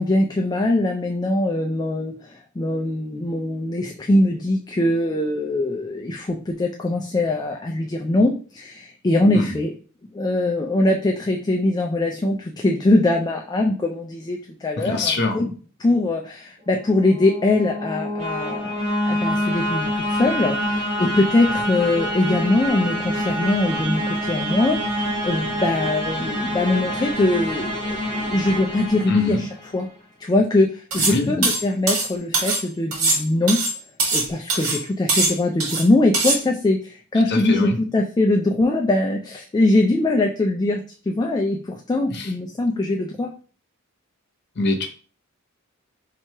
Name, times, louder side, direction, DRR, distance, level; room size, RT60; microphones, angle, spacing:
voice 1, 0.0-9.7 10.1-15.5 15.8-18.8 19.1-29.5 29.7-29.9 30.2-33.6 34.1-43.3, left 2 dB, 20° left, 1 dB, 0.4 m, -22 dB
voice 2, 14.8-15.4 29.1-29.5 31.0-31.3 37.2-37.8 42.1-42.3 44.6-44.9, left 2 dB, 55° left, 3 dB, 0.8 m, -24 dB
sound 1, 16.7-29.8, equal, 35° right, 1.0 m, -26 dB
sound 2, 30.9-31.2 31.4-32.6 32.9-34.2 34.5-34.8 35.1-35.8 36.1-36.4, right 3 dB, 90° right, 1.5 m, -22 dB
3.0 x 2.8 x 4.5 m, 0.39 s
head